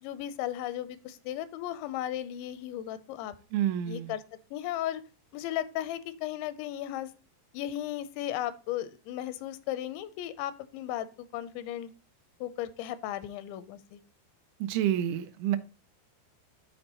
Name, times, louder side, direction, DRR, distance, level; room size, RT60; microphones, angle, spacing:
voice 1, 0.0-3.3 3.9-4.2 4.5-5.0 5.3-7.1 7.5-11.1 11.3-11.9 12.4-14.0, left 12 dB, 85° left, 14 dB, 2.9 m, -35 dB
voice 2, 3.5-4.1 14.6-15.6, right 11 dB, 90° right, 11 dB, 3.0 m, -28 dB
12.5 x 4.4 x 2.9 m, 0.33 s
omnidirectional pair, 5.2 m